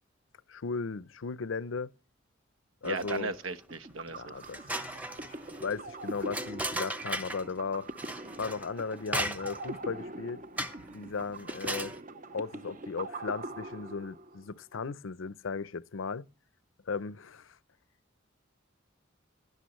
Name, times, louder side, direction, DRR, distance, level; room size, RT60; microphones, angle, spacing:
voice 1, 0.5-1.9 2.8-3.3 4.1-4.6 5.1-5.2 5.6-7.9 8.4-10.4 10.9-11.9 12.3-16.3 16.9-17.6, left 5 dB, 75° left, 0.6 m, -36 dB
sound 1, 2.8-3.4 3.9-4.0 4.4-7.5 8.0-9.8 10.6-10.9 11.4-12.0, right 1 dB, 10° right, 1.0 m, -37 dB
voice 2, 2.8-4.3, right 3 dB, 85° right, 1.1 m, -36 dB
sound 2, 3.7-14.5, right 1 dB, 40° right, 0.8 m, -43 dB
16.5 x 12.0 x 3.1 m
head